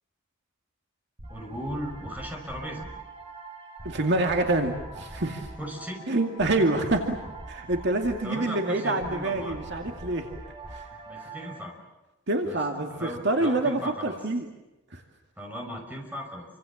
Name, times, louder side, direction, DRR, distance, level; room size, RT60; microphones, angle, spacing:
sound 1, 1.2-11.6, right 2 dB, 30° right, 3.9 m, -43 dB
voice 1, 1.3-2.9 5.6-6.0 8.2-9.6 11.0-11.8 12.4-14.2 15.4-16.5, equal, 10° right, 1 dB, 5.7 m, -37 dB
voice 2, 3.8-5.5 6.1-7.2 7.5-10.3 10.7-10.8 12.3-14.5 14.9-15.0, right 2 dB, 60° right, 3 dB, 2.4 m, -26 dB
29.0 x 25.5 x 7.3 m, 0.98 s
head